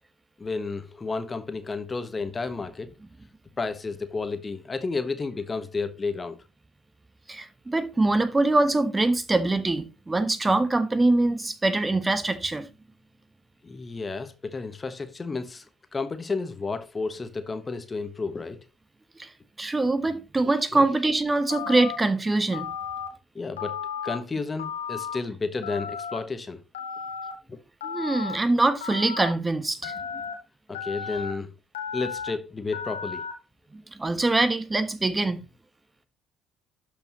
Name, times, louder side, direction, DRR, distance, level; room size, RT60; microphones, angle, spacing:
voice 1, 0.4-2.9 3.6-6.4 13.6-15.6 15.9-18.6 23.3-26.6 27.5-27.6 30.7-31.5 31.9-33.2, left 4 dB, 30° left, 1.1 m, -32 dB
voice 2, 7.3-12.7 19.2-19.3 19.6-22.7 27.8-29.9 33.7-35.4, right 2 dB, 20° right, 1.3 m, -24 dB
Telephone, 21.5-22.0 22.5-23.1 23.6-24.2 24.6-25.2 25.6-26.2 26.7-27.3 27.8-28.4 28.8-29.3 29.8-30.3 30.7-31.3 31.7-32.3 32.7-33.3, left 7 dB, 85° left, 1.4 m, -34 dB
12.0 x 5.2 x 3.0 m
hypercardioid pair, 50°, 0 cm